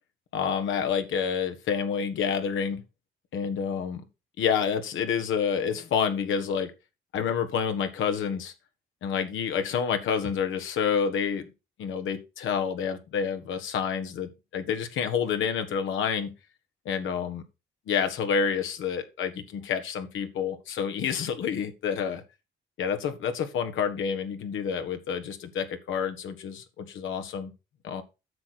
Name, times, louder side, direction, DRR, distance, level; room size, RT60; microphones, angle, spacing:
voice 1, 0.3-2.8 3.3-4.0 4.4-6.7 7.1-8.5 9.0-11.5 11.8-16.3 16.8-17.4 17.9-22.2 22.8-27.5 27.8-28.0, left 7 dB, 80° left, 7 dB, 1.5 m, -28 dB
9.6 x 6.4 x 4.3 m, 0.27 s
cardioid pair, 90°, 20 cm